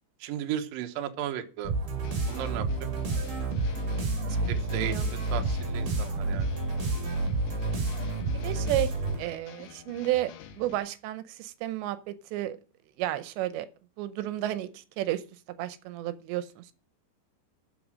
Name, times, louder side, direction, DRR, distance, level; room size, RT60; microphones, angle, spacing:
voice 1, 0.2-1.7 2.3-2.7 4.5-6.5, right 10 dB, 65° right, 2.4 m, -35 dB
sound 1, 1.6-9.3, right 2 dB, 50° right, 4.2 m, -29 dB
sound 2, 2.0-10.8, left 9 dB, 70° left, 2.0 m, -48 dB
voice 2, 4.7-5.1 8.4-8.9 9.2-12.6 13.0-13.7 14.0-15.2 15.6-16.7, right 14 dB, 85° right, 2.9 m, -32 dB
13.5 x 5.5 x 6.3 m
omnidirectional pair, 5.0 m